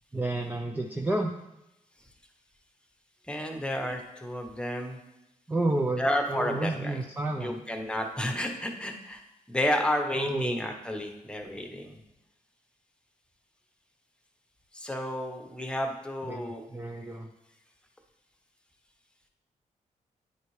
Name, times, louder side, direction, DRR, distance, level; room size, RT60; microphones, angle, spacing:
voice 1, 0.1-1.3 5.5-7.6 10.1-10.6 16.3-17.3, right 2 dB, 10° right, 3 dB, 0.5 m, -30 dB
voice 2, 3.3-5.0 6.0-7.0 7.4-9.2 9.5-12.0 14.7-16.6, left 1 dB, 5° left, 3 dB, 1.0 m, -31 dB
9.4 x 4.1 x 3.2 m, 0.90 s
cardioid pair, 65°, 15 cm